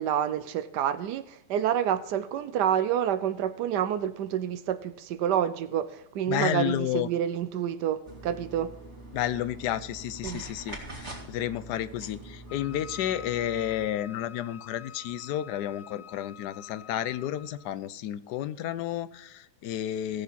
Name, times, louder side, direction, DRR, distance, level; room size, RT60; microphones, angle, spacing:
voice 1, 0.0-8.7 10.2-10.4, right 10 dB, 80° right, 1.2 m, -28 dB
voice 2, 6.3-7.1 9.1-20.2, left 11 dB, 80° left, 1.2 m, -31 dB
sound 1, 8.0-13.9, right 1 dB, 40° right, 3.1 m, -44 dB
Wind instrument woodwind instrument, 12.5-17.7, left 8 dB, 45° left, 0.6 m, -47 dB
18.0 x 6.9 x 4.2 m
omnidirectional pair, 1.8 m